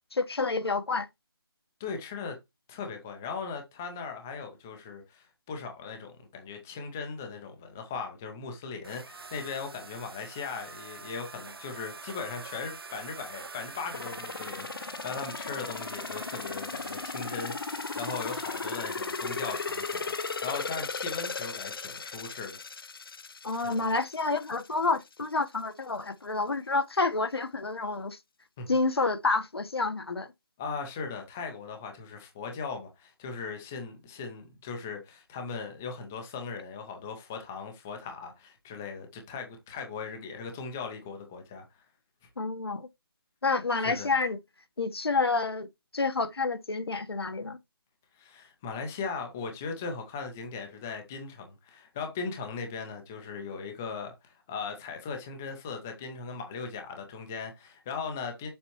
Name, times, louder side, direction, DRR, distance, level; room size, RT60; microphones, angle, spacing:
voice 1, 0.1-1.1 23.4-28.2 28.7-30.3 42.4-42.9 43.4-44.4 44.8-45.7 45.9-47.6, left 3 dB, 85° left, 1.2 m, -29 dB
voice 2, 1.8-2.4 2.7-22.6 23.6-23.8 28.6-28.7 30.6-41.6 43.8-44.1 48.2-58.5, left 5 dB, 5° left, 0.4 m, -38 dB
sound 1, 8.8-20.8, right 4 dB, 75° right, 0.8 m, -45 dB
sound 2, 13.9-24.7 25.1-25.2, left 4 dB, 65° left, 0.6 m, -37 dB
7.0 x 6.5 x 3.0 m
figure-of-eight pair, 170°, 13 cm